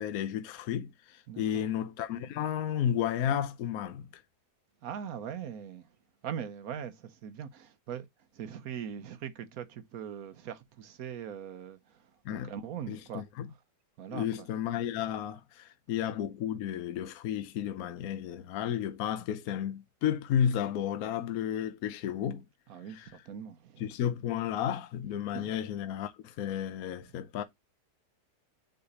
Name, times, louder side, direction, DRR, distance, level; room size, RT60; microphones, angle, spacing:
voice 1, 0.0-4.2 12.2-12.5 12.9-13.5 14.1-22.4 22.9-23.1 23.8-27.4, left 9 dB, 65° left, 1.0 m, -32 dB
voice 2, 4.8-5.9 6.2-8.1 8.3-13.2 14.0-14.5 22.7-23.9 25.3-25.6, right 8 dB, 65° right, 1.1 m, -41 dB
7.8 x 3.3 x 4.1 m
omnidirectional pair, 1.8 m